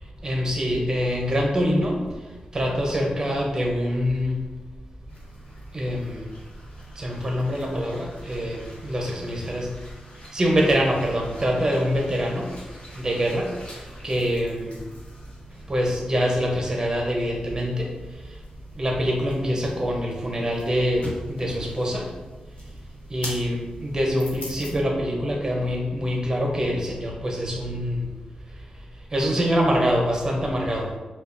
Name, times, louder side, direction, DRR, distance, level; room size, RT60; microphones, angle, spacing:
voice 1, 0.2-2.0 2.5-4.4 5.7-6.3 7.0-9.7 10.3-12.5 13.0-13.5 14.0-14.8 15.7-17.9 18.8-22.1 23.1-28.0 29.1-30.9, equal, 25° right, 0 dB, 0.7 m, -24 dB
sound 1, 5.1-24.7, equal, 55° left, 0.9 m, -45 dB
4.8 x 2.3 x 2.6 m, 1.2 s
wide cardioid pair, 120°, 2 cm